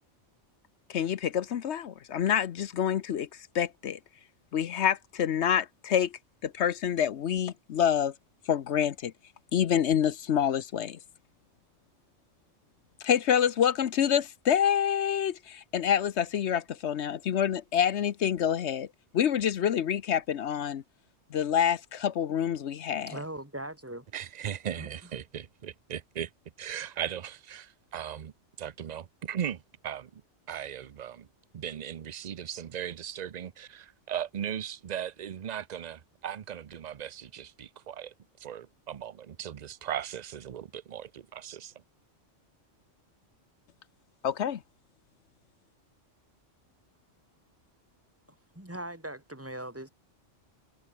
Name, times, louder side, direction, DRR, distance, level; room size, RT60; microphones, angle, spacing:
voice 1, 0.9-3.3 3.5-4.0 4.5-6.1 6.4-8.1 8.5-9.1 9.5-11.0 13.0-18.9 19.1-20.8 21.3-23.2 44.2-44.6, left 9 dB, 65° left, 1.0 m, -27 dB
voice 2, 23.1-24.1 24.8-24.9 48.5-49.9, right 1 dB, 10° right, 3.8 m, -39 dB
voice 3, 24.1-26.3 26.6-28.3 28.6-30.2 30.5-31.3 31.5-38.1 38.4-41.7, right 9 dB, 45° right, 0.6 m, -38 dB
omnidirectional pair, 1.3 m